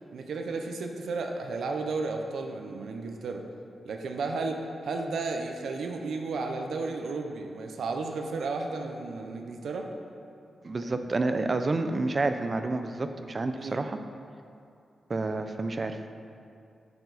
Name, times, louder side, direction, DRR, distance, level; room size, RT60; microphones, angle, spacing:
voice 1, 0.1-3.5 3.8-9.9 10.8-10.9 13.6-13.8, right 3 dB, 85° right, 3 dB, 0.8 m, -33 dB
voice 2, 10.6-14.0 15.1-16.1, right 3 dB, 30° right, 8 dB, 0.5 m, -29 dB
10.5 x 7.0 x 4.1 m, 2.5 s
wide cardioid pair, 135°, 0 cm